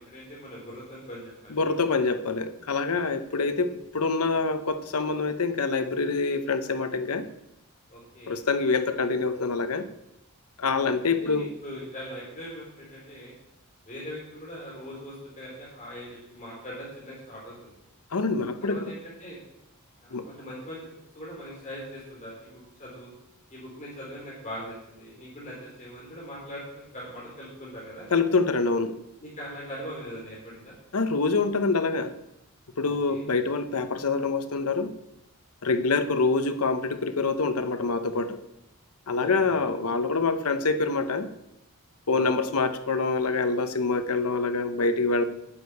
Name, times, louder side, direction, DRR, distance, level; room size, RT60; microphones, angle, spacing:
voice 1, 0.0-1.7 2.9-3.0 7.9-8.3 10.7-13.3 13.8-17.7 18.6-19.4 20.0-20.8 21.1-23.1 23.5-28.1 29.2-30.7 32.8-33.2 39.1-39.6 42.1-42.3, equal, 35° left, -5 dB, 3.5 m, -41 dB
voice 2, 1.5-7.3 8.3-9.9 10.6-11.5 18.1-18.9 20.1-20.3 28.1-28.9 30.9-32.1 32.8-34.9 35.6-38.4 39.1-41.3 42.1-45.2, left 4 dB, 85° left, 10 dB, 0.9 m, -26 dB
9.8 x 6.7 x 8.2 m, 0.87 s
head